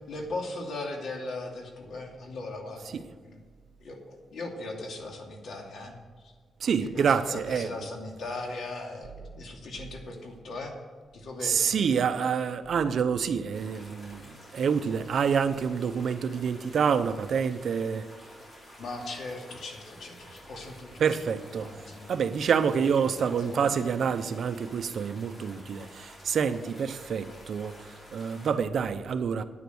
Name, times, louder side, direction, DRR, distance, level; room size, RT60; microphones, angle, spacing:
voice 1, 0.1-3.4 3.8-6.3 6.8-10.7 11.1-11.7 18.8-21.0 21.5-22.1 23.0-23.8, left 2 dB, 75° left, 2.6 m, -39 dB
voice 2, 6.6-7.7 11.4-18.1 21.0-21.7 22.1-29.4, right 6 dB, 65° right, 0.8 m, -27 dB
sound 1, 13.5-28.5, equal, 35° left, 4.7 m, -50 dB
9.9 x 9.4 x 7.9 m
wide cardioid pair, 130°, 0 cm